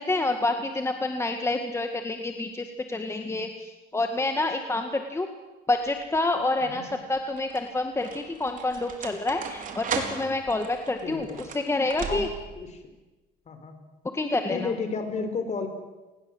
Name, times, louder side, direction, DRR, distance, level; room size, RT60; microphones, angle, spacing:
voice 1, 0.0-5.3 5.7-12.3 14.1-14.7, left 2 dB, 15° left, 5 dB, 1.9 m, -28 dB
sound 1, 5.8-6.3 7.1-12.6, right 6 dB, 50° right, 4.2 m, -37 dB
voice 2, 6.6-7.0 11.0-11.4 12.1-12.3 12.5-12.8 13.5-13.8 14.5-15.7, left 5 dB, 40° left, 8 dB, 4.9 m, -32 dB
28.5 x 20.0 x 7.9 m, 1.1 s
cardioid pair, 110°, 17 cm